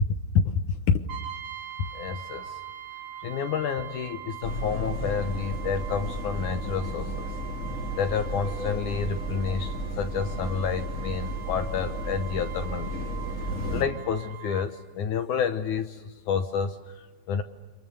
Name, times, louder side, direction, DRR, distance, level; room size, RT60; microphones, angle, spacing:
Brass instrument, 1.1-14.7, right 11 dB, 45° right, 2.8 m, -42 dB
voice 1, 1.9-2.6 3.2-7.3 8.0-13.1 13.7-16.8 17.3-17.4, left 6 dB, 65° left, 8 dB, 2.2 m, -29 dB
sound 1, 4.4-13.8, equal, 25° left, 2.5 m, -33 dB
29.5 x 26.5 x 6.9 m, 1.2 s
omnidirectional pair, 4.5 m